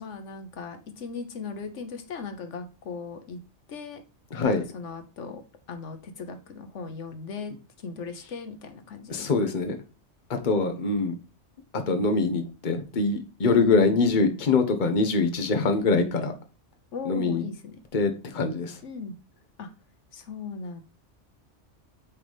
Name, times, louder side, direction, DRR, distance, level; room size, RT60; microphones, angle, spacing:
voice 1, 0.0-3.4 3.7-4.0 4.4-5.4 5.7-9.3 13.4-13.9 16.9-17.8 18.8-19.1 19.6-19.7 20.1-20.8, left 5 dB, 80° left, 8 dB, 1.2 m, -38 dB
voice 2, 4.3-4.6 9.1-9.8 10.3-11.1 11.7-16.3 17.1-17.4 17.9-18.8, left 3 dB, 45° left, 6 dB, 1.1 m, -24 dB
8.3 x 4.0 x 3.4 m, 0.32 s
omnidirectional pair, 1.2 m